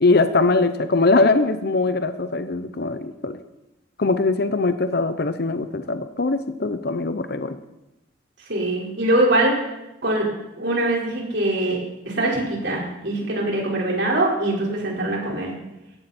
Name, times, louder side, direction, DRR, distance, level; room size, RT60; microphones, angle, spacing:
voice 1, 0.0-3.4 4.0-7.6, left 3 dB, 55° left, 10 dB, 0.8 m, -21 dB
voice 2, 8.5-9.5 10.0-10.3 10.6-11.8 12.0-15.5, right 1 dB, 60° right, -3 dB, 4.8 m, -22 dB
17.0 x 15.0 x 4.4 m, 0.93 s
head